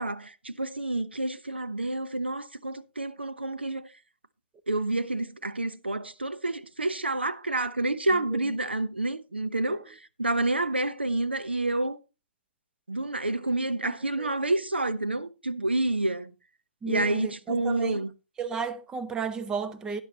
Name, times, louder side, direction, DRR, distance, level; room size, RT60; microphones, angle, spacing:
voice 1, 0.0-3.9 4.7-12.0 12.9-16.3 16.9-18.1, right 2 dB, 90° right, 0.9 m, -29 dB
voice 2, 16.8-18.0 18.4-20.0, right 6 dB, 10° right, 0.7 m, -33 dB
12.5 x 10.0 x 2.9 m
figure-of-eight pair, 125°, 6 cm